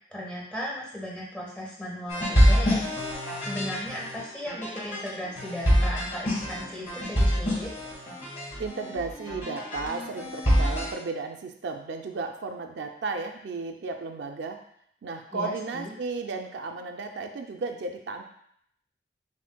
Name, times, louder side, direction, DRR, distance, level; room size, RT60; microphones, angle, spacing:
voice 1, 0.1-2.8 3.4-7.7 15.3-15.9, equal, 5° left, -5 dB, 0.9 m, -36 dB
sound 1, 2.1-10.9, equal, 45° left, 1.6 m, -26 dB
voice 2, 8.6-14.6 15.0-18.2, right 3 dB, 85° right, 5 dB, 0.4 m, -34 dB
7.2 x 2.5 x 2.2 m, 0.68 s
head